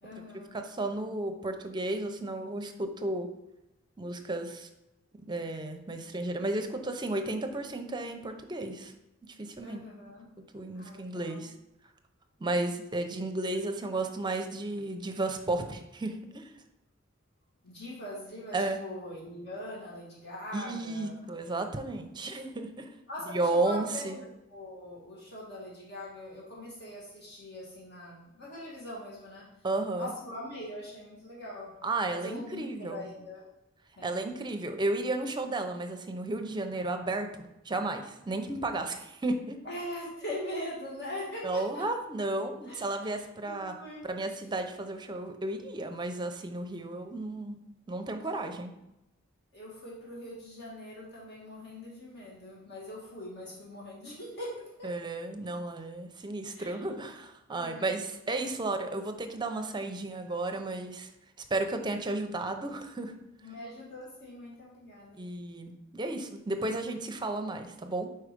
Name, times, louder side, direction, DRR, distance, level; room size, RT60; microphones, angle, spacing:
voice 1, 0.0-0.6 9.6-10.3 10.7-11.5 17.6-21.2 23.1-29.5 30.0-31.7 32.1-33.4 34.0-34.2 39.6-41.9 42.7-42.8 43.4-44.1 49.5-54.9 55.3-55.4 56.6-56.8 57.6-57.9 63.4-65.3, left 1 dB, 55° left, -5 dB, 1.7 m, -42 dB
voice 2, 0.5-3.3 4.0-4.7 5.3-8.9 9.4-9.8 10.5-11.5 12.4-16.5 18.5-18.8 20.5-22.9 23.3-24.2 29.6-30.1 31.8-33.0 34.0-39.6 41.4-43.7 44.0-47.6 47.9-48.7 54.8-61.1 61.5-63.1 65.2-68.1, right 2 dB, 20° right, 6 dB, 0.6 m, -33 dB
4.8 x 4.5 x 5.1 m, 0.90 s
head